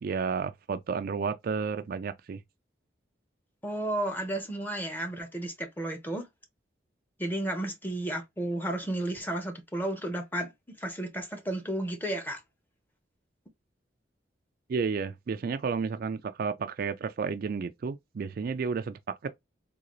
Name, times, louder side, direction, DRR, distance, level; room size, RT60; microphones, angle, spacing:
voice 1, 0.0-2.4 14.7-19.4, right 5 dB, 50° right, 0.3 m, -32 dB
voice 2, 3.6-6.3 7.2-10.5 10.8-12.4, right 1 dB, 10° left, 0.8 m, -32 dB
3.8 x 2.4 x 3.0 m
head